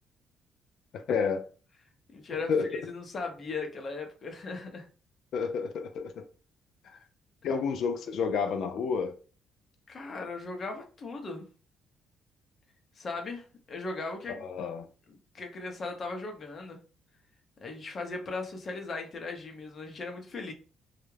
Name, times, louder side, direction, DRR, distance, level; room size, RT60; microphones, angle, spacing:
voice 1, 0.9-1.5 2.5-2.8 5.3-6.2 6.8-7.0 7.4-9.1 14.3-14.9, left 5 dB, 65° left, 0.3 m, -30 dB
voice 2, 2.1-4.9 9.9-11.5 13.0-14.4 15.1-16.8 17.6-20.5, left 3 dB, 40° left, 0.7 m, -38 dB
2.3 x 2.0 x 3.1 m
cardioid pair, 120°, 0 cm